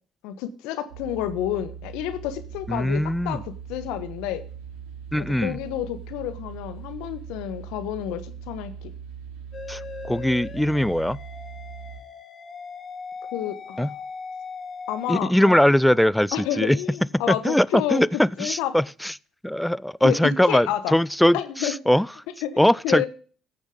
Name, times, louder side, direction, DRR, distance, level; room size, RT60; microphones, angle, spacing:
voice 1, 0.2-4.4 5.1-8.9 13.3-13.9 14.9-15.6 16.3-18.8 20.0-20.9 21.3-21.7 22.4-23.1, left 11 dB, 70° left, 1.2 m, -30 dB
sound 1, 0.9-12.0, right 7 dB, 85° right, 3.4 m, -40 dB
voice 2, 2.7-3.4 5.1-5.6 9.7-11.2 13.8-13.9 15.1-16.8 17.3-19.1 19.4-22.1 22.6-23.1, left 1 dB, 5° left, 0.4 m, -21 dB
sound 2, 9.5-15.2, left 5 dB, 40° left, 2.1 m, -39 dB
16.0 x 7.1 x 3.8 m
hypercardioid pair, 55°, 0 cm